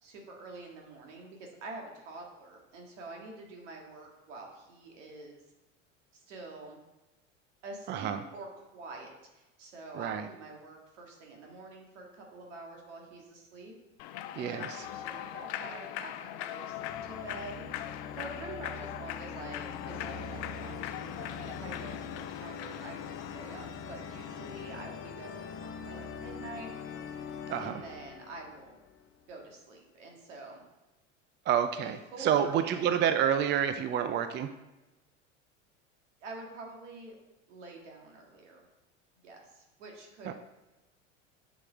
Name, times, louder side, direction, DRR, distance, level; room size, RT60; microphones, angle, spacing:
voice 1, 0.0-5.4 6.1-6.8 7.6-13.7 14.4-27.0 27.6-28.7 29.3-30.6 31.8-33.0 36.2-37.2 37.5-38.6 39.2-40.3, right 3 dB, 70° right, 0 dB, 2.0 m, -47 dB
voice 2, 7.9-8.2 10.0-10.2 14.4-14.7 27.5-27.8 31.5-34.5 40.3-40.4, right 9 dB, 30° right, 9 dB, 0.5 m, -28 dB
Human voice / Clapping / Cheering, 14.0-23.7, left 12 dB, 60° left, 0.6 m, -41 dB
sound 1, 14.8-16.0 16.6-29.3, left 6 dB, 35° left, 0.9 m, -43 dB
7.2 x 6.4 x 3.7 m, 1.0 s
hypercardioid pair, 80°, 37 cm